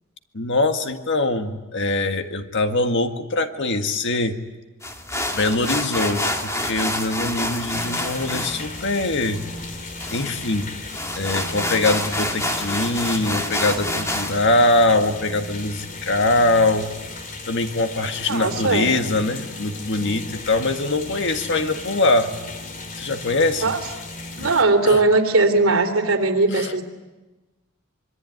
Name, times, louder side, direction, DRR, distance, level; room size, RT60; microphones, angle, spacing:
voice 1, 0.3-4.4 5.3-9.4 10.1-10.7 11.2-16.9 17.5-22.3 23.0-23.7 24.4-24.5 24.8-25.0 26.5-26.7, left 2 dB, 60° left, 7 dB, 1.8 m, -22 dB
sound 1, 4.8-14.4, left 1 dB, 15° left, 2.3 m, -28 dB
sound 2, 7.7-24.6, left 2 dB, 40° left, 2.9 m, -36 dB
voice 2, 18.3-18.9 23.6-23.8 24.3-26.8, right 3 dB, 80° right, 5 dB, 3.4 m, -19 dB
26.0 x 22.5 x 9.4 m, 1.1 s
head